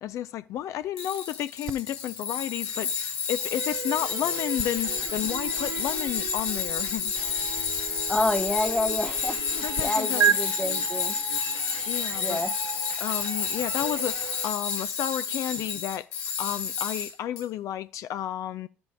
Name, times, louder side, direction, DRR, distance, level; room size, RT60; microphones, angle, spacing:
voice 1, 0.0-7.1 9.6-10.4 11.9-12.4 13.0-16.1 16.4-18.7, left 11 dB, 60° left, 0.3 m, -32 dB
Tools, 1.0-17.4, left 6 dB, 75° left, 1.5 m, -30 dB
sound 1, 1.7-9.8 10.2-10.4, right 8 dB, 45° right, 0.5 m, -34 dB
sound 2, 3.4-14.5, right 8 dB, 75° right, 1.6 m, -40 dB
voice 2, 8.1-11.2 12.2-12.5, left 1 dB, 10° left, 0.7 m, -28 dB
13.0 x 5.2 x 3.5 m
hypercardioid pair, 60°, 6 cm